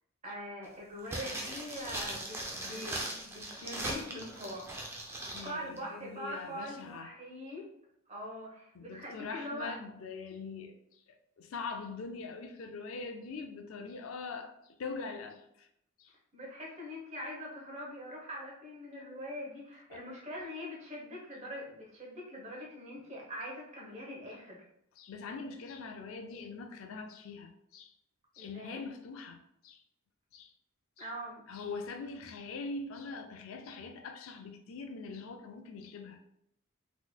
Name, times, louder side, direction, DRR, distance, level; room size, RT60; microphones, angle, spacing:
voice 1, 0.2-4.7 5.1-7.7 8.1-9.7 16.3-24.7 28.4-28.8 31.0-31.4, equal, 30° right, -2 dB, 1.0 m, -43 dB
sound 1, 1.0-5.5 5.8-5.9, right 1 dB, 10° right, 0.5 m, -39 dB
voice 2, 5.3-7.1 8.7-15.7 16.0-16.1 19.9-20.0 25.0-27.9 28.3-29.8 30.3-30.5 31.0-31.1 31.5-36.2, left 4 dB, 70° left, 6 dB, 0.4 m, -43 dB
3.8 x 3.0 x 2.3 m, 0.75 s
head